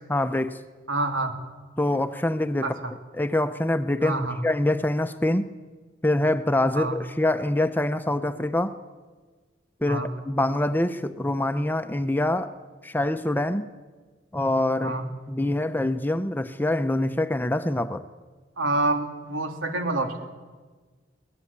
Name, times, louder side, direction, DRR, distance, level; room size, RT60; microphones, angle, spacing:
voice 1, 0.1-0.6 1.8-2.7 3.1-4.2 4.4-5.5 6.0-8.8 9.8-12.5 12.8-13.7 14.3-14.9 15.3-18.0, left 1 dB, 10° left, 10 dB, 0.7 m, -25 dB
voice 2, 0.9-1.3 2.6-2.9 4.0-4.4 6.7-7.0 9.9-10.1 14.8-15.1 18.6-20.3, right 2 dB, 85° right, 4 dB, 3.1 m, -27 dB
23.0 x 19.0 x 8.7 m, 1.4 s
head